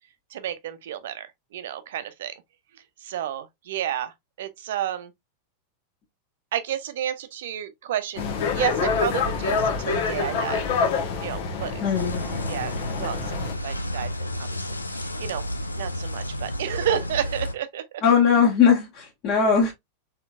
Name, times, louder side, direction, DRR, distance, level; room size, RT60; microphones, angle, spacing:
voice 1, 0.3-1.3 1.5-2.3 3.0-4.1 4.4-5.1 6.5-8.2 8.5-10.6 11.2-11.7 12.5-12.7 13.0-13.3 13.6-14.5 14.9-15.4 15.8-17.8, right 10 dB, 55° right, 0.7 m, -30 dB
sound 1, 8.2-13.5, left 5 dB, 50° left, 1.3 m, -26 dB
voice 2, 11.8-12.3 18.0-19.7, left 6 dB, 35° left, 1.5 m, -19 dB
sound 2, 11.9-17.5, left 1 dB, 80° left, 0.6 m, -31 dB
4.4 x 3.8 x 2.5 m
figure-of-eight pair, 90°, 0 cm